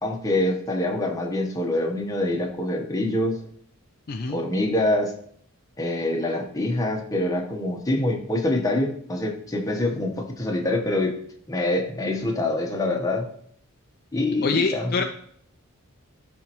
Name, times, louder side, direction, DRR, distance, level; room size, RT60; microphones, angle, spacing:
voice 1, 0.0-3.4 4.3-5.1 5.8-11.2 11.5-13.3 14.1-15.0, left 1 dB, 15° left, 1 dB, 1.1 m, -25 dB
voice 2, 4.1-4.4 14.4-15.0, left 4 dB, 45° left, 5 dB, 0.5 m, -25 dB
13.0 x 4.3 x 3.0 m, 0.63 s
head